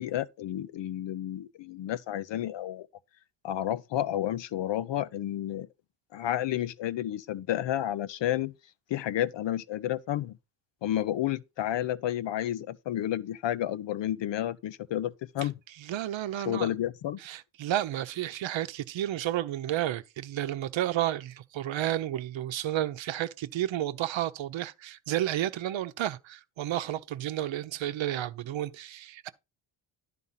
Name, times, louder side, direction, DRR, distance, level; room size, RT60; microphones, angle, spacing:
voice 1, 0.0-2.9 3.4-5.7 6.1-8.5 8.9-10.4 10.8-15.5 16.5-17.2, left 12 dB, 65° left, 0.8 m, -31 dB
voice 2, 15.8-16.7 17.2-29.3, right 12 dB, 70° right, 0.9 m, -31 dB
11.0 x 3.8 x 5.7 m
cardioid pair, 130°, 48 cm